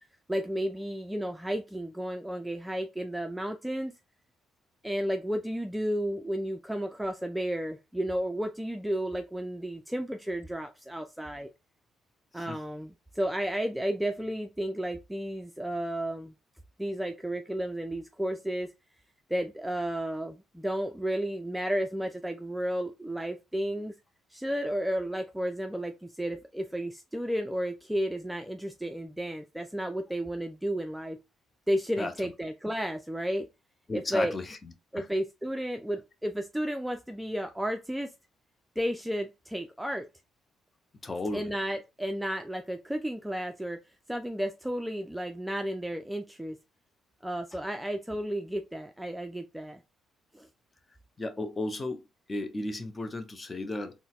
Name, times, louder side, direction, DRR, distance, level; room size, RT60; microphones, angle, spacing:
voice 1, 0.3-3.9 4.8-11.5 12.3-16.3 16.8-18.7 19.3-23.9 24.3-31.2 31.7-33.5 33.9-34.4 34.9-38.1 38.8-40.1 41.3-43.8 44.1-46.6 47.2-49.8 50.3-50.5, equal, 5° right, 0.4 m, -32 dB
voice 2, 33.9-34.4 34.9-35.1 41.0-41.5 51.2-52.0 52.3-53.9, left 2 dB, 30° left, 0.6 m, -34 dB
3.9 x 2.1 x 2.3 m
hypercardioid pair, 45°, 0 cm